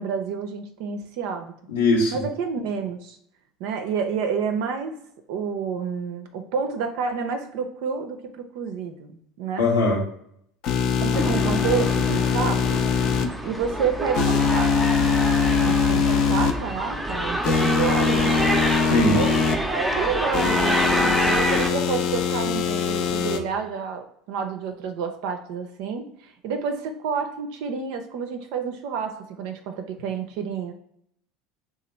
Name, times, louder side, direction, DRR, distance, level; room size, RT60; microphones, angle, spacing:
voice 1, 0.0-1.5 2.1-3.2 3.6-5.0 5.3-9.7 11.0-12.6 13.4-14.7 15.6-18.4 19.1-30.7, right 6 dB, 60° right, 6 dB, 0.4 m, -29 dB
voice 2, 1.7-2.1 9.6-10.0 18.9-19.2, left 2 dB, 80° left, -3 dB, 0.8 m, -20 dB
sound 1, 10.6-13.3 14.1-16.5 17.4-19.5 20.3-23.4, left 6 dB, 50° left, 0.5 m, -22 dB
sound 2, 11.1-21.7, equal, 5° right, 0.5 m, -27 dB
2.9 x 2.3 x 4.2 m, 0.71 s
hypercardioid pair, 75°, 0 cm